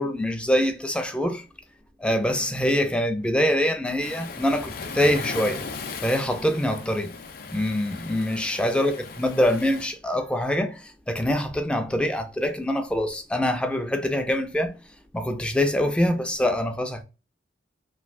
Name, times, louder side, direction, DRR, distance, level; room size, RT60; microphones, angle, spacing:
voice 1, 0.0-1.4 2.0-5.7 6.0-7.1 7.5-14.8 15.1-17.0, left 1 dB, 5° left, 0.4 m, -24 dB
Waves surf, 4.0-9.9, left 4 dB, 60° left, 0.5 m, -37 dB
3.1 x 2.7 x 2.4 m
head